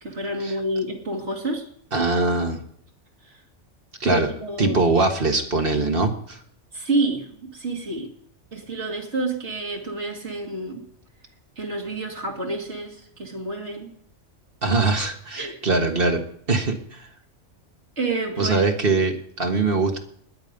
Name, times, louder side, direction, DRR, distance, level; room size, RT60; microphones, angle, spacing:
voice 1, 0.0-1.7 3.2-3.4 4.0-4.8 6.7-8.1 8.5-10.9 11.6-13.9 15.4-15.6 18.0-18.7, right 2 dB, 65° right, 0 dB, 2.7 m, -29 dB
voice 2, 1.9-2.6 4.0-4.3 4.6-6.4 14.6-16.2 16.5-17.1 18.4-20.0, right 3 dB, 50° right, 4 dB, 1.9 m, -22 dB
20.5 x 9.3 x 5.3 m, 0.65 s
omnidirectional pair, 1.3 m